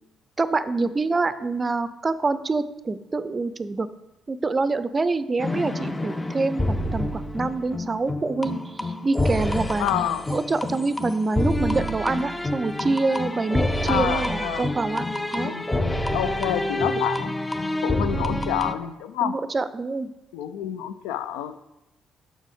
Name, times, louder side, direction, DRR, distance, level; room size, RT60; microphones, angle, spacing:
voice 1, 0.4-3.9 4.3-9.9 10.3-15.1 15.3-15.6 18.3-18.4 19.2-20.1, right 3 dB, 30° right, 14 dB, 0.5 m, -26 dB
sound 1, 5.4-18.7, left 1 dB, 15° left, 0.6 m, -27 dB
voice 2, 9.8-10.3 13.9-14.7 15.4-17.3 17.8-19.3 20.3-21.5, left 11 dB, 65° left, 12 dB, 0.4 m, -28 dB
7.4 x 5.7 x 4.9 m, 0.95 s
figure-of-eight pair, 45°, 0 cm